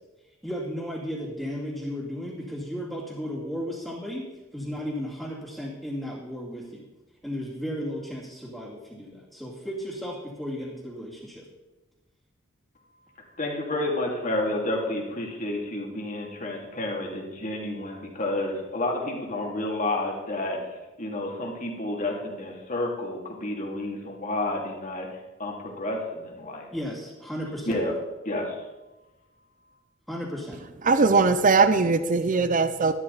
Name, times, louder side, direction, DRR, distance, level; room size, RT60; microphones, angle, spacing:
voice 1, 0.4-4.3 4.5-6.9 7.2-11.5 26.7-27.8 30.1-30.6, equal, ahead, -9 dB, 2.6 m, -34 dB
voice 2, 13.4-25.1 25.4-26.7 27.7-28.0 28.2-28.6, left 1 dB, 40° left, 0 dB, 2.8 m, -30 dB
voice 3, 30.8-32.9, right 4 dB, 45° right, 11 dB, 0.7 m, -20 dB
13.0 x 12.5 x 4.1 m, 1.1 s
head